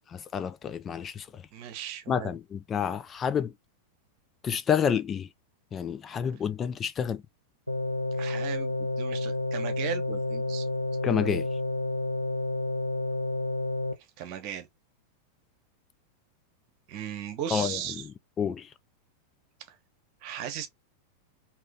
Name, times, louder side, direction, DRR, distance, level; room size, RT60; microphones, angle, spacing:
voice 1, 0.1-1.4 2.1-3.5 4.4-5.3 5.7-7.2 11.0-11.5 17.5-17.8 18.4-18.7, left 7 dB, 25° left, 0.4 m, -29 dB
voice 2, 1.5-2.4 8.2-10.7 14.2-14.7 16.9-18.1 20.2-20.7, right 10 dB, 45° right, 1.1 m, -36 dB
sound 1, 7.7-13.9, left 2 dB, 90° left, 0.6 m, -30 dB
3.7 x 2.9 x 3.7 m
figure-of-eight pair, 90°, 0 cm